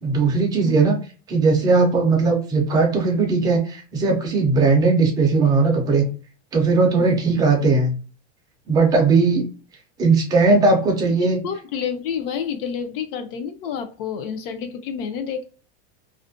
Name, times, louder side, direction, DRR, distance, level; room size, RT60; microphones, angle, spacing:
voice 1, 0.0-1.0 1.3-6.0 6.5-7.9 8.7-9.5 10.0-11.4, right 3 dB, 10° right, 0 dB, 0.3 m, -18 dB
voice 2, 11.2-15.4, left 7 dB, 55° left, 8 dB, 0.6 m, -29 dB
2.4 x 2.1 x 2.4 m, 0.37 s
supercardioid pair, 160°, 33 cm